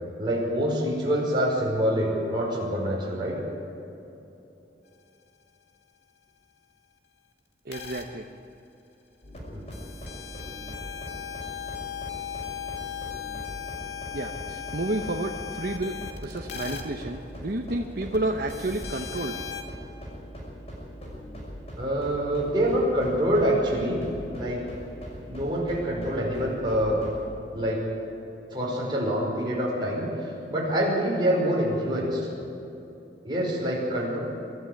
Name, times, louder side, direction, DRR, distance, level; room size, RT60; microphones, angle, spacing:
voice 1, 0.2-3.4 9.5-9.6 21.8-24.0 24.3-24.6 25.3-27.0 27.5-27.8 28.5-32.2 33.2-34.2, equal, 25° right, -4 dB, 5.3 m, -26 dB
voice 2, 7.6-8.3 14.1-19.4, right 2 dB, 60° right, 2 dB, 1.0 m, -31 dB
sound 1, 7.7-8.1 9.4-9.5 9.7-16.8 18.1-18.2 18.5-19.6, left 8 dB, 75° left, 2.2 m, -37 dB
sound 2, 9.2-27.3, equal, 40° left, 5.9 m, -41 dB
23.5 x 13.0 x 8.7 m, 2.9 s
head